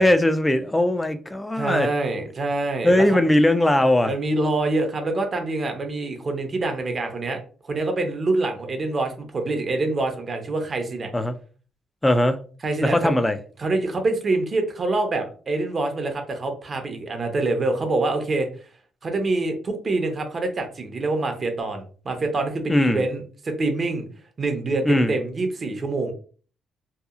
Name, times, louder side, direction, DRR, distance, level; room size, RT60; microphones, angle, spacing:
voice 1, 0.0-1.9 2.8-4.1 11.1-11.3 12.0-12.4 12.8-13.4 22.7-23.0 24.9-25.1, left 1 dB, 10° left, 0.3 m, -19 dB
voice 2, 1.6-3.0 4.0-7.4 7.6-11.1 12.6-13.2 13.6-18.5 19.0-24.1 24.4-26.1, right 2 dB, 40° right, 0.6 m, -25 dB
2.8 x 2.3 x 2.4 m
cardioid pair, 90°, 0 cm